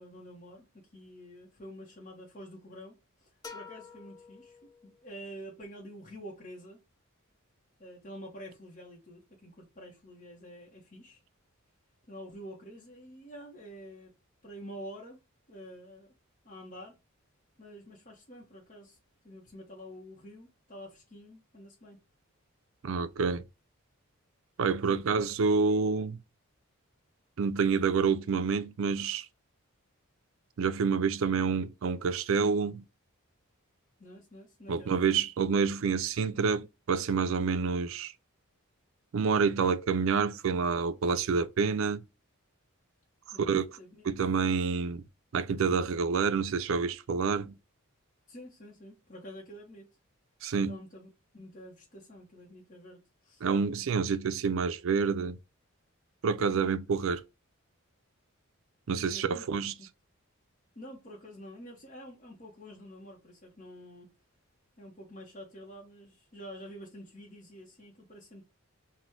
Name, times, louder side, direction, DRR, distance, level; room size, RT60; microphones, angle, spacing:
voice 1, 0.0-6.8 7.8-11.2 12.1-14.1 14.4-15.2 15.5-16.1 16.4-17.0 17.6-19.0 19.2-22.0 24.9-25.2 34.0-35.0 43.3-44.1 48.3-49.9 50.7-53.4 59.1-59.5 59.8-59.9 60.7-64.1 64.8-68.5, equal, 35° left, 1.0 m, -48 dB
sound 1, 3.4-5.2, left 5 dB, 20° left, 0.5 m, -48 dB
voice 2, 22.8-23.4 24.6-26.2 27.4-29.3 30.6-32.8 34.7-38.1 39.1-42.0 43.4-43.7 44.1-45.0 45.3-47.6 50.4-50.8 53.4-55.4 56.2-57.2 58.9-59.7, right 5 dB, 65° right, 0.4 m, -28 dB
4.1 x 2.2 x 4.5 m
head